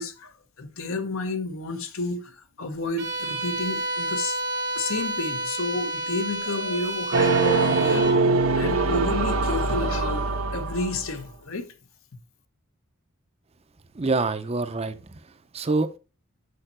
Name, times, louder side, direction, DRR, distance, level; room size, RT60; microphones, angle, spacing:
voice 1, 0.0-4.4 4.7-8.1 8.5-10.2 10.5-11.6, left 2 dB, 75° left, 1.0 m, -31 dB
Bowed string instrument, 3.0-8.3, right 2 dB, 55° right, 0.9 m, -30 dB
sound 1, 7.1-11.3, right 3 dB, 85° right, 1.2 m, -23 dB
voice 2, 13.9-16.0, right 3 dB, 30° right, 0.5 m, -27 dB
6.7 x 5.5 x 4.3 m
head